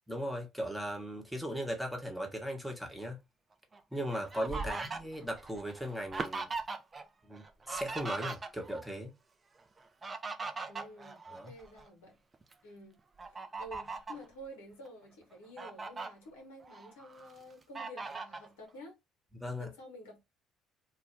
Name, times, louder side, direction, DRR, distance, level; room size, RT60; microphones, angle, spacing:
voice 1, 0.1-3.2 3.9-6.5 7.2-9.1 11.3-11.5 19.4-19.7, equal, ahead, 1.0 m, -38 dB
Fowl, 3.7-7.0 7.3-8.9 9.8-11.9 12.3-12.5 13.2-14.2 14.9-15.0 15.3-16.1 16.6-17.3 17.8-18.5, right 4 dB, 30° right, 0.5 m, -40 dB
voice 2, 4.6-4.9 10.7-12.2 12.6-13.0 13.3-18.9 19.6-20.2, equal, 80° left, 0.8 m, -50 dB
2.4 x 2.1 x 3.1 m
hypercardioid pair, 55°, 0 cm